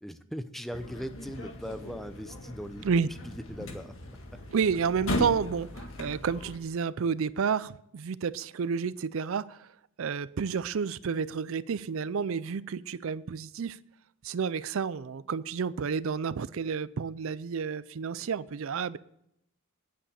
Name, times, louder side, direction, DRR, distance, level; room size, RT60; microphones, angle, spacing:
voice 1, 0.0-2.9 3.2-3.9 4.3-4.4, equal, ahead, 10 dB, 0.6 m, -39 dB
sound 1, 0.7-6.6, left 1 dB, 65° left, 1.8 m, -38 dB
voice 2, 4.5-9.7 10.0-13.8 14.2-19.0, right 6 dB, 65° right, 18 dB, 0.4 m, -30 dB
9.8 x 8.6 x 6.8 m, 0.79 s
head